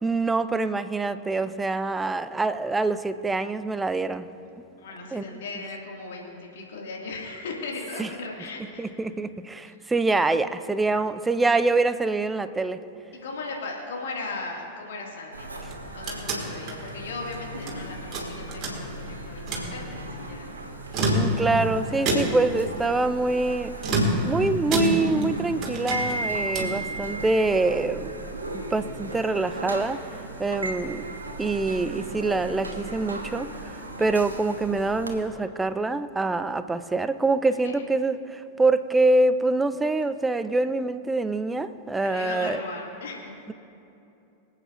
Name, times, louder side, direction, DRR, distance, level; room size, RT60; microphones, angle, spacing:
voice 1, 0.0-4.3 5.1-5.4 8.0-8.1 8.8-12.8 21.1-23.7 24.2-30.0 30.4-31.1 31.4-42.6, right 3 dB, 10° right, 13 dB, 0.5 m, -25 dB
voice 2, 4.8-8.9 9.7-9.8 13.2-15.5 15.9-20.5 37.6-37.8 42.0-43.3, left 3 dB, 60° left, -1 dB, 2.1 m, -37 dB
sound 1, 15.3-35.1, right 2 dB, 80° right, 1.3 m, -36 dB
sound 2, 15.6-17.8 18.1-19.1 19.4-19.7 20.8-21.6 22.0-22.6 23.8-25.3 25.6-26.8, right 1 dB, 35° right, 2.6 m, -27 dB
25.5 x 8.7 x 2.5 m, 2.8 s
figure-of-eight pair, 90°, 0 cm